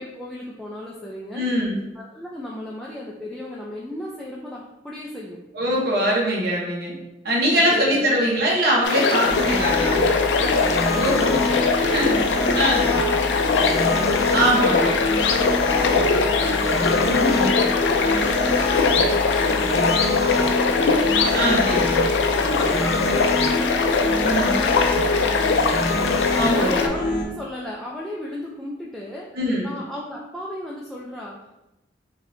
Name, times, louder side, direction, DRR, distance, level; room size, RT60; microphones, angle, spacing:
voice 1, 0.0-1.5 2.0-5.4 7.5-7.8 9.4-10.1 10.4-12.5 12.9-15.0 15.6-17.2 17.6-21.3 22.1-29.3 29.6-31.4, left 1 dB, ahead, -5 dB, 0.4 m, -35 dB
voice 2, 1.4-1.8 5.5-6.9 7.2-10.0 10.9-12.2 12.5-12.9 14.3-15.0 17.1-17.6 21.3-22.0 24.2-24.5 26.4-26.8 29.4-29.7, equal, 60° right, -3 dB, 0.9 m, -22 dB
sound 1, 8.8-26.9, left 4 dB, 80° left, 0.4 m, -22 dB
sound 2, 9.2-27.2, left 2 dB, 40° left, 0.8 m, -25 dB
5.1 x 2.7 x 2.6 m, 0.94 s
head